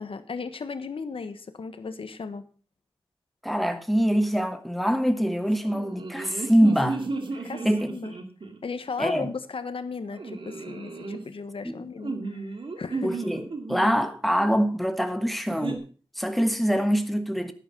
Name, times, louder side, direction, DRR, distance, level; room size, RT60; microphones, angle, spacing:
voice 1, 0.0-2.4 7.4-8.1 8.6-13.2, left 5 dB, 75° left, 1.3 m, -36 dB
voice 2, 3.4-7.1 7.4-7.9 9.0-9.3 11.6-11.9 13.0-15.9 16.1-17.5, equal, ahead, 1.3 m, -24 dB
sound 1, 5.6-8.7 10.1-11.2 12.0-14.1 15.5-15.8, right 3 dB, 65° right, 2.2 m, -34 dB
11.5 x 10.0 x 5.4 m
wide cardioid pair, 100°, 9 cm